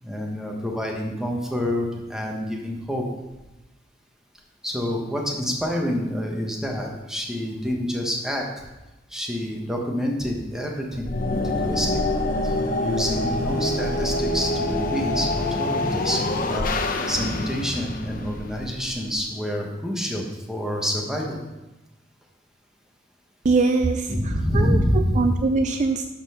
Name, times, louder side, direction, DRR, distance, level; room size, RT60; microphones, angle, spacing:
voice 1, 0.0-3.0 4.6-8.6 9.1-12.0 12.4-16.2 16.5-16.7 17.1-21.4 24.1-25.2, equal, 5° right, 0 dB, 1.4 m, -27 dB
sound 1, 11.0-19.1, left 2 dB, 50° left, 0.9 m, -26 dB
voice 2, 23.4-26.1, right 3 dB, 40° right, 7 dB, 0.5 m, -23 dB
12.5 x 4.4 x 5.7 m, 1.0 s
head